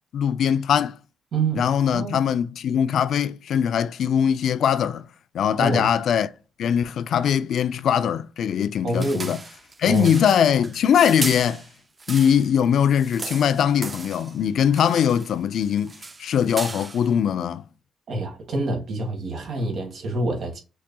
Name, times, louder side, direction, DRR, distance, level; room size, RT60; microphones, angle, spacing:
voice 1, 0.1-1.0 1.5-5.1 5.3-6.3 6.6-9.4 9.8-11.6 12.1-17.7, left 8 dB, 65° left, 0.3 m, -21 dB
voice 2, 1.3-2.2 5.6-5.8 8.8-9.3 9.8-10.2 18.1-20.6, right 2 dB, 60° right, 1.6 m, -27 dB
sound 1, 8.9-12.5 12.8-14.4 14.7-15.3 15.6-17.1, right 3 dB, 30° right, 0.4 m, -36 dB
6.1 x 2.8 x 2.2 m
cardioid pair, 90°, 0 cm